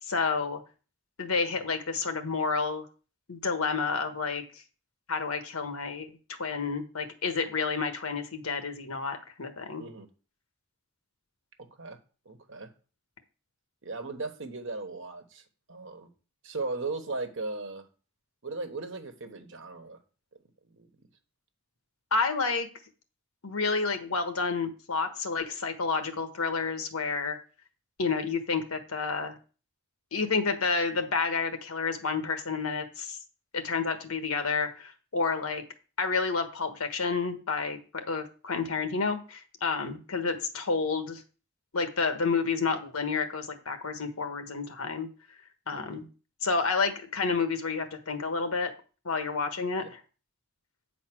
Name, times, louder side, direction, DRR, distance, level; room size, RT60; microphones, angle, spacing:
voice 1, 0.1-0.6 1.2-2.9 3.3-4.4 5.1-9.8 22.1-22.7 23.4-27.4 28.0-29.4 30.1-33.2 33.5-35.6 36.0-41.2 41.7-45.1 45.7-46.1 46.4-48.7 49.0-50.0, left 4 dB, 80° left, 1.3 m, -30 dB
voice 2, 11.6-12.0 12.2-12.7 13.8-15.4 15.7-16.1 16.4-17.8 18.4-20.0 20.6-20.9 45.7-46.0 49.8-49.9, right 3 dB, 60° right, 1.2 m, -37 dB
8.8 x 4.2 x 6.0 m
head